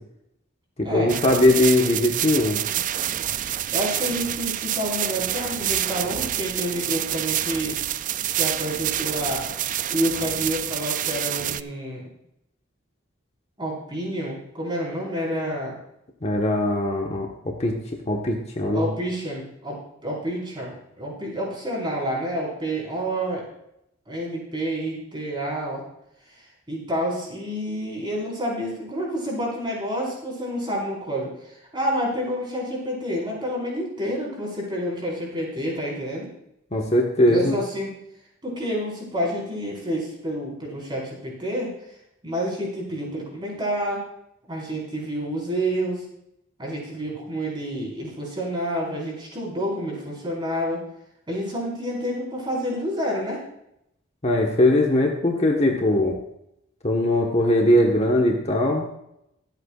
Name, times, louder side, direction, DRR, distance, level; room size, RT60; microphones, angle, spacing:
voice 1, 0.8-2.6 16.2-17.7 18.0-18.9 36.7-37.6 54.2-56.2 56.8-58.9, left 1 dB, 30° left, 0 dB, 1.3 m, -20 dB
sound 1, 1.1-11.6, right 12 dB, 40° right, 0.4 m, -27 dB
voice 2, 3.7-7.7 8.3-9.5 9.9-12.1 13.6-15.7 18.7-23.4 24.1-25.8 26.7-36.3 37.3-37.9 38.4-41.7 42.2-44.0 44.5-46.0 46.6-50.8 51.3-53.4, equal, 25° right, -3 dB, 4.7 m, -29 dB
24.0 x 8.3 x 2.5 m, 0.80 s
head